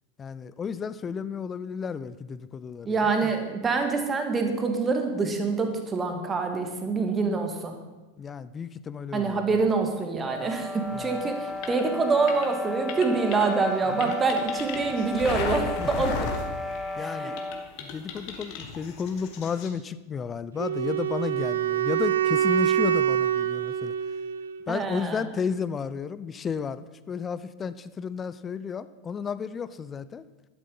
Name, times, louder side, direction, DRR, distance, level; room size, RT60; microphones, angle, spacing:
voice 1, 0.2-3.3 8.2-9.6 10.9-11.3 14.0-14.1 15.8-15.9 17.0-17.3 17.8-23.9 24.7-30.2, left 6 dB, 20° left, 15 dB, 0.5 m, -33 dB
voice 2, 2.9-7.8 9.1-16.3 17.0-17.3 24.7-25.2, right 4 dB, 20° right, 5 dB, 1.9 m, -26 dB
sound 1, 10.2-17.7, left 2 dB, ahead, 1.0 m, -34 dB
sound 2, 10.9-17.1 17.4-19.7, left 5 dB, 45° left, 1.7 m, -36 dB
Wind instrument woodwind instrument, 20.6-24.7, right 10 dB, 65° right, 0.6 m, -25 dB
12.0 x 10.5 x 5.4 m, 1.1 s
figure-of-eight pair, 90°, 0 cm